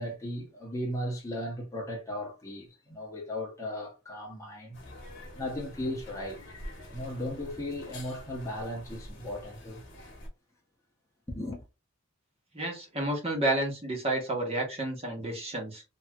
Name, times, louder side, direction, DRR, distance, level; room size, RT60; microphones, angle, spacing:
voice 1, 0.0-4.8 5.3-9.8 11.3-11.6, left 1 dB, 15° left, 0.9 m, -36 dB
sound 1, 4.7-10.3, left 1 dB, 60° left, 1.1 m, -46 dB
voice 2, 12.5-15.8, right 2 dB, 30° right, 1.2 m, -30 dB
3.1 x 2.7 x 2.3 m
head